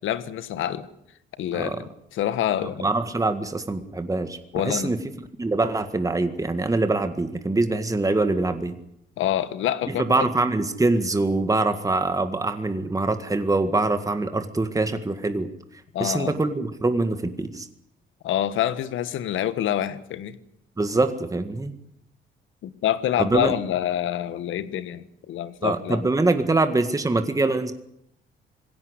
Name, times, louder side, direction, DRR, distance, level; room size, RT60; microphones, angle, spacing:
voice 1, 0.0-0.9 1.4-2.9 4.5-4.9 9.2-10.3 15.9-16.3 18.2-20.4 22.6-26.0, left 11 dB, 80° left, 1.5 m, -26 dB
voice 2, 1.5-1.9 2.6-5.0 5.4-8.8 9.9-15.5 16.0-17.7 20.8-21.7 23.2-23.5 25.6-27.7, right 2 dB, 15° right, 1.8 m, -24 dB
20.5 x 17.0 x 9.7 m
cardioid pair, 90°, 20 cm